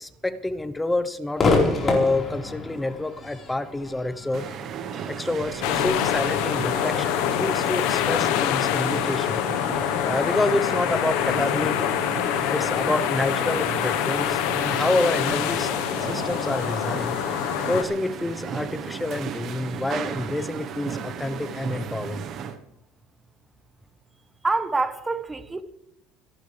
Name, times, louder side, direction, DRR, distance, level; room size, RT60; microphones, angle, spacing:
voice 1, 0.0-4.5 4.9-9.4 10.0-12.0 12.5-15.7 16.0-17.2 17.7-22.2, left 2 dB, 10° left, 1.0 m, -28 dB
Crowd / Fireworks, 1.4-8.7, left 3 dB, 30° left, 4.4 m, -29 dB
sound 1, 4.3-22.6, right 7 dB, 50° right, 1.2 m, -35 dB
sound 2, 5.6-17.8, left 11 dB, 75° left, 1.2 m, -25 dB
voice 2, 24.4-25.6, right 3 dB, 15° right, 1.2 m, -26 dB
26.0 x 11.5 x 3.4 m
cardioid pair, 125°, 0 cm